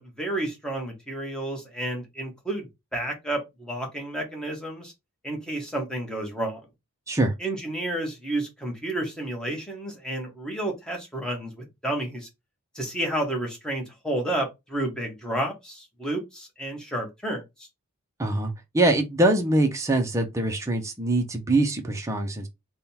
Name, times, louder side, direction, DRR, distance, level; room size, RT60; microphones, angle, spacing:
voice 1, 0.0-4.9 5.2-6.6 7.4-12.3 12.7-17.7, right 1 dB, 5° left, 1.1 m, -31 dB
voice 2, 18.2-22.5, right 2 dB, 15° right, 0.7 m, -23 dB
3.7 x 2.3 x 4.2 m
head